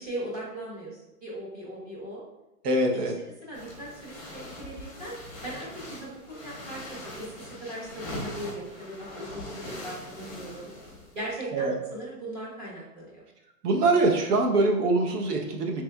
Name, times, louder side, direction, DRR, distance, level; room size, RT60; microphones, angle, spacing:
voice 1, 0.0-2.2 2.8-3.1 3.4-5.2 5.4-5.7 6.0-10.7 11.1-13.2, right 1 dB, 25° right, -6 dB, 1.0 m, -39 dB
voice 2, 2.6-3.1 11.5-11.7 13.6-15.8, right 2 dB, 90° right, 2 dB, 0.9 m, -23 dB
sound 1, 3.5-11.3, left 1 dB, 10° left, 0.7 m, -42 dB
4.4 x 3.4 x 2.2 m, 0.94 s
hypercardioid pair, 170°, 45 cm